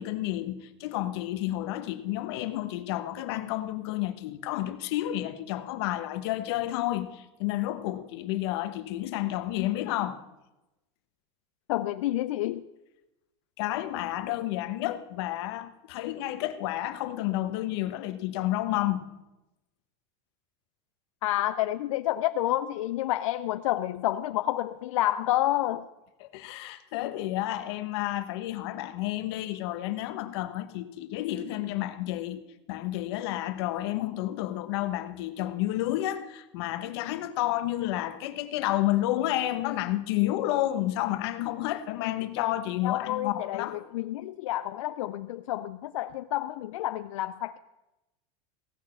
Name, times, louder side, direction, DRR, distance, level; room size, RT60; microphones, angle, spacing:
voice 1, 0.0-10.2 13.6-19.1 26.2-32.4 32.7-43.9, left 15 dB, 55° left, 1.0 m, -30 dB
voice 2, 11.7-12.6 21.2-25.8 42.8-47.6, left 14 dB, 80° left, 0.5 m, -29 dB
16.5 x 6.4 x 7.6 m
supercardioid pair, 175°, 17 cm